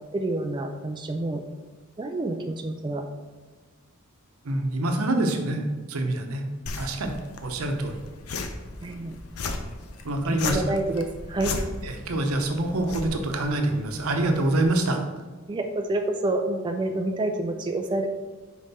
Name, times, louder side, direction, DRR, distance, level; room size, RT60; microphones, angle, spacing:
voice 1, 0.1-1.4 2.0-3.1 8.8-9.2 10.3-11.6 15.5-18.1, right 2 dB, 20° right, 4 dB, 0.3 m, -28 dB
voice 2, 4.4-6.4 6.7-7.1 7.4-8.0 10.0-10.6 11.8-15.0, right 1 dB, 80° right, 4 dB, 0.8 m, -26 dB
sound 1, 6.7-14.7, left 3 dB, 85° left, 0.6 m, -36 dB
5.4 x 4.9 x 4.1 m, 1.3 s
head